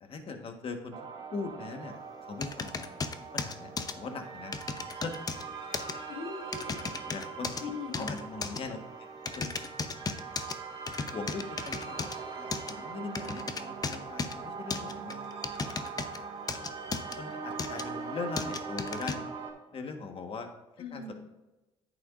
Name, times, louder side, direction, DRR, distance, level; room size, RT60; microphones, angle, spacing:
voice 1, 0.0-1.0 1.3-2.9 3.3-4.5 5.0-5.1 7.1-7.5 7.9-9.1 9.3-9.6 11.1-12.1 12.3-15.3 17.2-19.3 19.7-20.5 20.9-21.1, left 4 dB, 50° left, 5 dB, 1.4 m, -40 dB
sound 1, 0.9-19.5, right 5 dB, 45° right, 2.1 m, -42 dB
sound 2, 2.4-4.0 4.5-5.4 5.7-5.9 6.5-7.6 7.9-8.6 9.3-10.6 10.9-12.2 12.5-12.7 13.2-14.4 14.7-16.2 16.5-17.2 17.6-17.8 18.4-19.2, left 4 dB, 30° left, 0.8 m, -35 dB
voice 2, 6.1-6.7 7.5-8.2 20.8-21.1, left 4 dB, 85° left, 0 dB, 2.0 m, -40 dB
10.0 x 8.6 x 2.5 m, 1.1 s
supercardioid pair, 80°, 12 cm